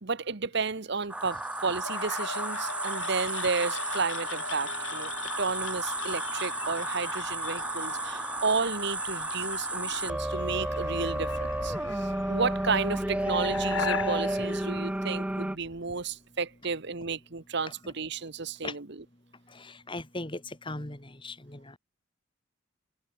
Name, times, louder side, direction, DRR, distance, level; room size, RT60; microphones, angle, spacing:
voice 1, 0.0-5.1 5.4-18.9, right 4 dB, 60° right, 1.2 m, -32 dB
sound 1, 1.1-15.6, right 1 dB, 5° right, 0.4 m, -32 dB
sound 2, 1.8-15.7, left 6 dB, 70° left, 1.0 m, -40 dB
voice 2, 19.5-21.8, left 2 dB, 25° left, 2.3 m, -39 dB
head